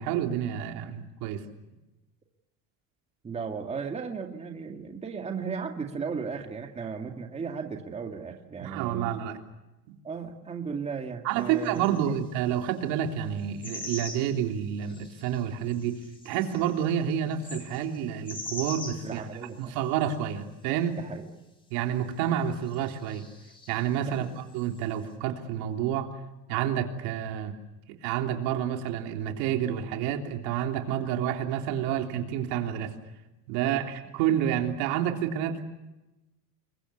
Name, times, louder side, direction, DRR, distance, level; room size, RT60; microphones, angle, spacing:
voice 1, 0.0-1.4 8.6-9.4 11.2-16.0 16.2-19.2 19.6-21.0 21.7-23.2 23.7-24.2 24.5-26.1 26.5-27.5 28.0-32.9 33.5-35.7, right 9 dB, 80° right, 4 dB, 3.4 m, -29 dB
voice 2, 3.2-9.1 10.0-12.1 19.0-19.8 21.0-21.2 24.1-24.3 33.6-33.8, right 5 dB, 15° right, 4 dB, 2.0 m, -36 dB
sound 1, 11.6-12.1 13.4-14.3 14.8-15.4 15.7-18.0 18.2-19.7 20.0-20.1 22.7-23.9 24.5-24.8, left 2 dB, 15° left, 3.5 m, -42 dB
28.0 x 22.5 x 8.4 m, 1.0 s
cardioid pair, 165°, 36 cm